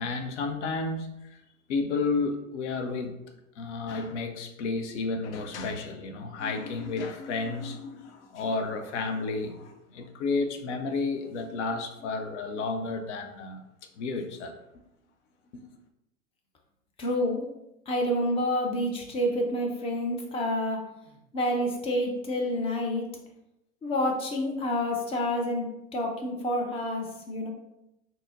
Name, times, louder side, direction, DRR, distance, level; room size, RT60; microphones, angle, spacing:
voice 1, 0.0-1.4 1.7-3.2 3.6-13.6 14.0-14.6 15.5-15.6, left 3 dB, 60° left, 6 dB, 0.6 m, -32 dB
voice 2, 17.0-17.4 17.9-20.8 21.3-23.1 23.8-27.5, left 1 dB, 15° left, 1 dB, 0.5 m, -28 dB
3.7 x 2.8 x 2.6 m, 0.88 s
hypercardioid pair, 100°, 41 cm